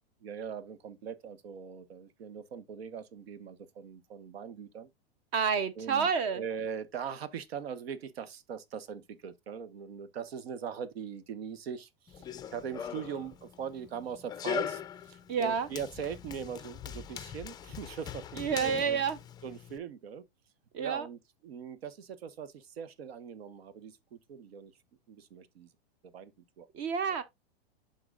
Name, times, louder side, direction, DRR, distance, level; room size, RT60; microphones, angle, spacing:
voice 1, 0.2-4.9 5.8-19.0 19.4-20.3 20.8-24.7 25.1-25.7 26.0-26.3 26.6-26.7, right 7 dB, 80° right, 1.2 m, -41 dB
voice 2, 5.3-6.4 15.3-15.7 18.4-19.2 20.7-21.1 26.7-27.2, right 6 dB, 40° right, 0.7 m, -29 dB
Run, 12.1-19.8, left 9 dB, 15° left, 0.4 m, -41 dB
12.0 x 3.9 x 2.4 m
hypercardioid pair, 130°, 30 cm